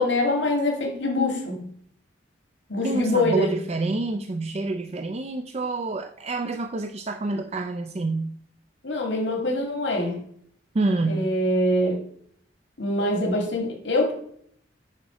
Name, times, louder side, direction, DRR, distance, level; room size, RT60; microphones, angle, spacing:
voice 1, 0.0-1.6 2.7-3.5 8.8-10.1 11.1-12.0 12.8-14.1, left 1 dB, 75° left, 1 dB, 1.9 m, -24 dB
voice 2, 2.8-8.3 10.7-11.3, right 2 dB, 35° right, 6 dB, 0.4 m, -27 dB
9.0 x 5.9 x 4.8 m, 0.66 s
head